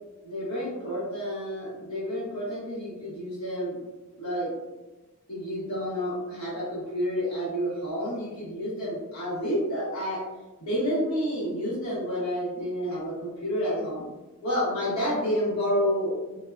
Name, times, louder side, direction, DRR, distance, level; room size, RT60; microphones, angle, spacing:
voice 1, 0.2-3.8 4.2-4.5 5.3-10.2 10.6-14.0 14.4-16.4, equal, 75° left, -8 dB, 1.4 m, -29 dB
2.8 x 2.3 x 2.4 m, 1.1 s
head